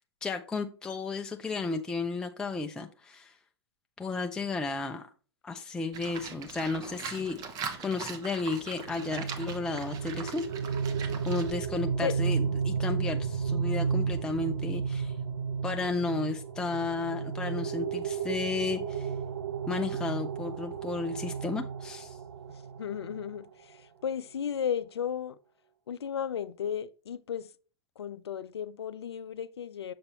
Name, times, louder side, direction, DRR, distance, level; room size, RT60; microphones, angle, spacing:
voice 1, 0.2-3.3 4.0-5.1 5.4-7.4 7.8-10.4 11.2-12.4 12.6-15.1 15.6-19.1 19.7-22.2, left 3 dB, 5° left, 0.4 m, -33 dB
Livestock farm animals working animals, 5.9-11.5, right 6 dB, 30° right, 0.9 m, -41 dB
sound 1, 8.6-23.4, right 6 dB, 70° right, 0.7 m, -33 dB
voice 2, 22.5-25.4 25.9-27.5 28.0-29.9, left 8 dB, 80° left, 0.4 m, -34 dB
6.8 x 5.3 x 2.9 m
hypercardioid pair, 110°, 13 cm